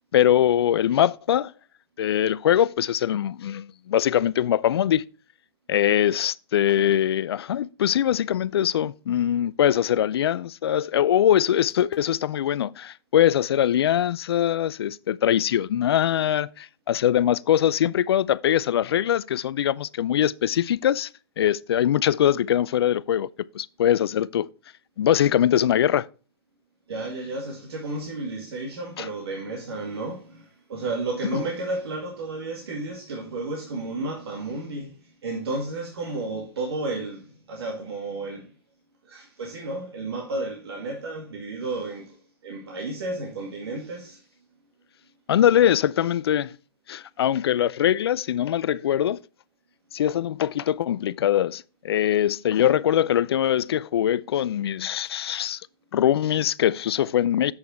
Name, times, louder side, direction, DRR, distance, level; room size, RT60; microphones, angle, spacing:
voice 1, 0.0-1.5 2.0-5.0 5.7-21.1 21.4-23.3 23.5-24.5 25.0-26.1 29.0-29.1 31.3-31.4 45.3-46.5 46.9-49.2 49.9-55.6 55.9-57.5, left 10 dB, 80° left, 0.4 m, -22 dB
voice 2, 26.9-38.5 39.0-44.2, right 2 dB, 75° right, 2.1 m, -32 dB
8.0 x 5.6 x 4.2 m
hypercardioid pair, 120°, 13 cm